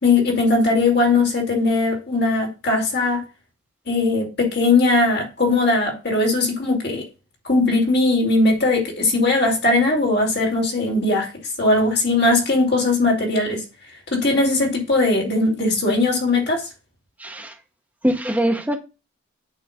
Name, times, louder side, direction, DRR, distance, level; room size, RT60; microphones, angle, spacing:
voice 1, 0.0-3.2 3.9-7.0 7.4-13.6 14.1-16.7, left 2 dB, 50° left, 2.7 m, -19 dB
voice 2, 17.2-17.5 18.0-18.8, equal, 10° right, 1.0 m, -22 dB
8.7 x 3.1 x 6.5 m
head